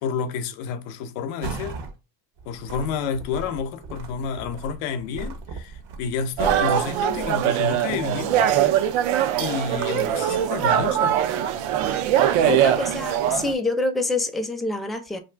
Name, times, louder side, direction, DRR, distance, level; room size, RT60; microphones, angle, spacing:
voice 1, 0.0-1.8 2.5-8.3 9.4-11.2 12.4-12.6, left 6 dB, 90° left, 0.7 m, -30 dB
sound 1, 1.4-1.9 2.4-7.3, right 4 dB, 55° right, 0.8 m, -37 dB
sound 2, 6.4-13.5, right 10 dB, 80° right, 0.6 m, -22 dB
voice 2, 12.5-15.2, left 2 dB, ahead, 0.5 m, -26 dB
2.6 x 2.4 x 3.3 m
supercardioid pair, 85°, 49 cm